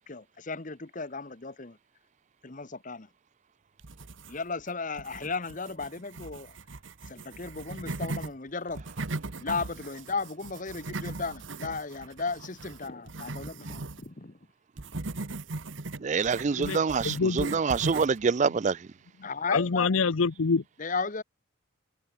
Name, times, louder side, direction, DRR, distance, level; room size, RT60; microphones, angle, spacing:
voice 1, 0.1-1.8 2.4-3.1 4.3-6.6 7.1-8.8 9.4-14.4 19.2-20.0 20.8-21.2, left 4 dB, 40° left, 1.1 m, -35 dB
sound 1, 3.8-4.6 5.0-8.3 8.7-14.1 14.8-18.2, right 2 dB, 65° right, 1.3 m, -38 dB
voice 2, 16.0-18.9, right 5 dB, 35° right, 0.4 m, -26 dB
voice 3, 17.0-17.5 19.5-20.6, left 4 dB, 90° left, 0.7 m, -26 dB
head